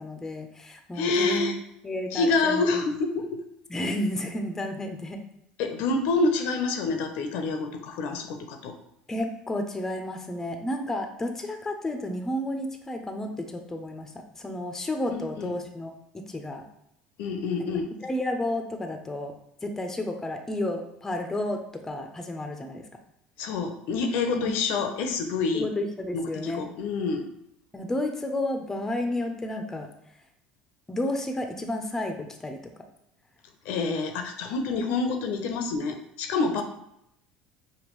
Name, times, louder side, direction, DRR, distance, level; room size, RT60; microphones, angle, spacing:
voice 1, 0.0-2.8 3.7-5.2 9.1-16.6 17.6-17.7 18.0-19.3 19.6-22.9 24.4-24.5 25.5-26.6 27.7-29.9 30.9-32.7, left 1 dB, 15° left, 4 dB, 0.5 m, -32 dB
voice 2, 1.0-1.6 2.1-3.4 5.6-8.8 15.1-15.5 17.2-17.9 23.4-25.7 26.1-27.3 33.7-36.6, left 3 dB, 70° left, 5 dB, 0.6 m, -27 dB
5.1 x 2.2 x 3.1 m, 0.78 s
supercardioid pair, 110°, 3 cm